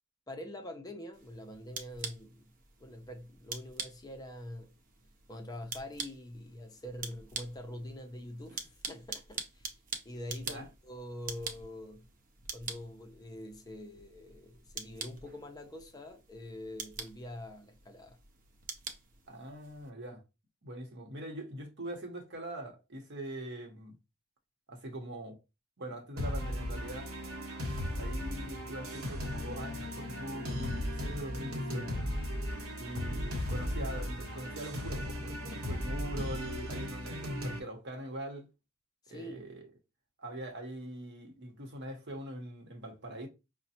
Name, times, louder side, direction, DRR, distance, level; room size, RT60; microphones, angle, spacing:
voice 1, 0.3-2.5 2.8-4.7 5.3-9.7 10.0-12.0 12.5-18.2 39.1-39.5, left 1 dB, 20° left, 0.5 m, -45 dB
sound 1, 1.1-19.9, right 5 dB, 40° right, 0.6 m, -46 dB
voice 2, 19.3-20.2 20.6-23.9 24.7-25.4 25.8-27.1 28.0-32.0 32.8-38.5 39.1-39.7 40.2-43.3, right 1 dB, 60° right, 0.9 m, -42 dB
sound 2, 26.2-37.6, left 1 dB, 75° right, 1.0 m, -36 dB
5.1 x 2.1 x 2.8 m
head